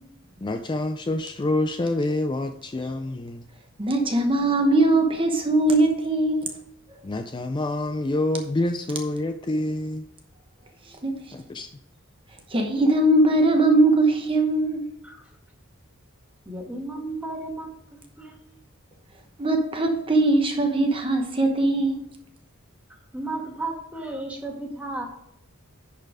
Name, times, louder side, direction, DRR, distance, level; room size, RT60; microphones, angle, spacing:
voice 1, 0.4-3.4 7.0-10.1 11.3-11.7, left 2 dB, 20° left, 0.4 m, -27 dB
voice 2, 3.8-6.4 11.0-11.1 12.5-14.9 19.4-21.9, right 2 dB, 25° right, 0.9 m, -20 dB
voice 3, 16.4-17.7 18.2-18.6 22.9-25.1, right 2 dB, 5° right, 1.7 m, -34 dB
10.5 x 4.5 x 4.9 m
head